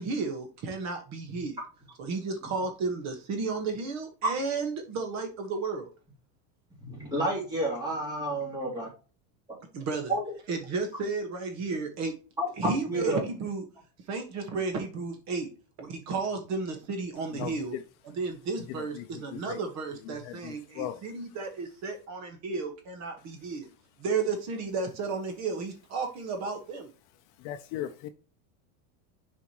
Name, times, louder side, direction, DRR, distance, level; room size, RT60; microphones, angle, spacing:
voice 1, 0.0-1.6 2.0-5.9 9.7-10.1 10.5-12.1 12.6-13.6 14.1-15.5 15.8-17.8 18.0-23.7 24.0-26.9, right 4 dB, 40° right, 1.4 m, -33 dB
voice 2, 6.8-8.9 10.1-10.2 12.4-13.2, right 1 dB, 10° right, 2.8 m, -30 dB
voice 3, 20.4-21.0 27.4-28.1, left 12 dB, 50° left, 0.6 m, -36 dB
7.2 x 5.0 x 3.0 m
supercardioid pair, 155°, 42 cm